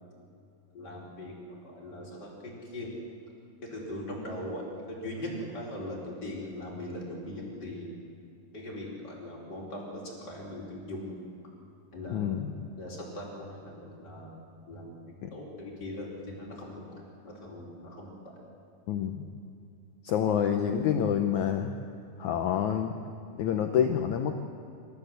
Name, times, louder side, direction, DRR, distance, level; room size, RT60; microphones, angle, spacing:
voice 1, 0.7-2.9 3.7-7.9 8.5-11.2 11.9-12.3 12.8-14.3 14.7-14.9 15.3-16.9 17.2-18.1, left 1 dB, 25° left, -4 dB, 5.0 m, -40 dB
voice 2, 12.1-12.5 15.2-15.3 18.9-19.3 20.0-21.7 22.2-22.9 23.4-24.4, left 8 dB, 85° left, 5 dB, 1.6 m, -27 dB
27.0 x 14.0 x 8.1 m, 2.7 s
omnidirectional pair, 4.7 m